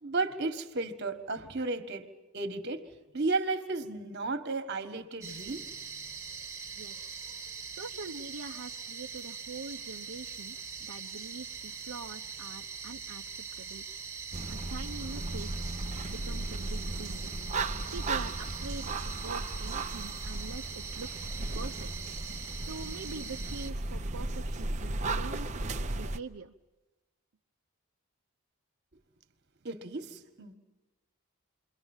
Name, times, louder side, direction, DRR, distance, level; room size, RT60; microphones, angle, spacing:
voice 1, 0.0-2.1 2.3-2.9 3.1-5.7 29.6-30.5, right 3 dB, 50° right, 1.6 m, -33 dB
sound 1, 5.2-23.7, right 6 dB, 15° right, 1.5 m, -42 dB
voice 2, 7.7-13.8 14.5-17.3 17.9-21.3 21.5-21.9 22.6-25.5 25.9-26.5, right 3 dB, 70° right, 0.8 m, -44 dB
sound 2, 14.3-26.2, right 2 dB, 30° right, 0.8 m, -36 dB
28.5 x 23.0 x 7.3 m
head